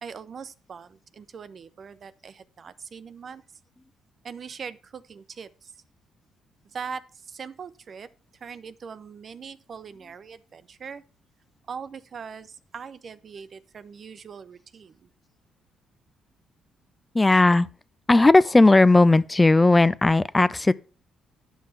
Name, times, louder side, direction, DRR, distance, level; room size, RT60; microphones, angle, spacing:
voice 1, 0.0-3.4 4.2-5.7 6.6-8.1 8.4-11.0 11.7-15.1, right 6 dB, 50° right, 0.7 m, -41 dB
voice 2, 17.1-17.7 18.1-20.7, left 2 dB, 15° left, 0.4 m, -17 dB
10.0 x 5.6 x 5.7 m
cardioid pair, 90°, 0 cm